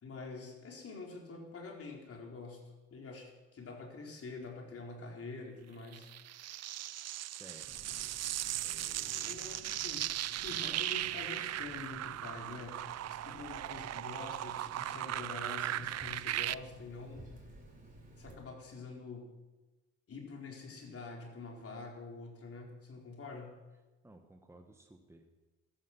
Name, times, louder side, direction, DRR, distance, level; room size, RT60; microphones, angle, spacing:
voice 1, 0.0-2.6 2.9-6.1 9.2-10.1 10.3-17.2 18.2-19.3 20.1-23.5, left 3 dB, 50° left, 0 dB, 4.6 m, -46 dB
sound 1, 5.9-16.5, right 13 dB, 60° right, 0.5 m, -38 dB
voice 2, 7.2-8.0 8.6-9.4 10.5-10.8 24.0-25.3, right 1 dB, 10° right, 4 dB, 1.6 m, -57 dB
Water tap faucet, 7.6-18.3, right 1 dB, 25° right, 5.1 m, -55 dB
15.0 x 14.0 x 6.2 m, 1.2 s
cardioid pair, 90°, 30 cm